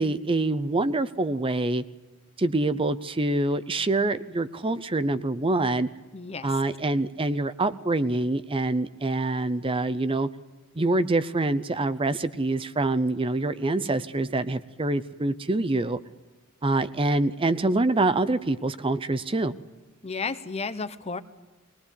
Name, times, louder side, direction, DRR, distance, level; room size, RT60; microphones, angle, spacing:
voice 1, 0.0-1.8 2.4-5.9 6.4-10.3 10.8-16.0 16.6-19.5, right 2 dB, 25° right, 13 dB, 0.7 m, -25 dB
voice 2, 6.1-6.5 20.0-21.2, left 4 dB, 30° left, 12 dB, 1.0 m, -32 dB
23.0 x 18.5 x 8.3 m, 1.2 s
head